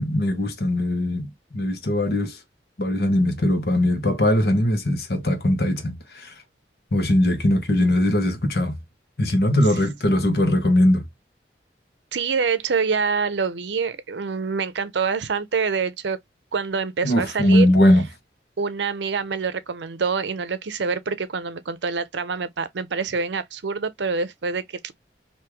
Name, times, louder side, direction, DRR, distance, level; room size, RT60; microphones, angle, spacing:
voice 1, 0.0-2.4 2.8-6.3 6.9-8.8 9.2-11.0 17.0-18.0, left 1 dB, 60° left, 1.0 m, -20 dB
voice 2, 12.1-16.2 16.5-17.7 18.6-24.9, right 5 dB, 85° right, 0.6 m, -26 dB
3.4 x 2.7 x 3.0 m
head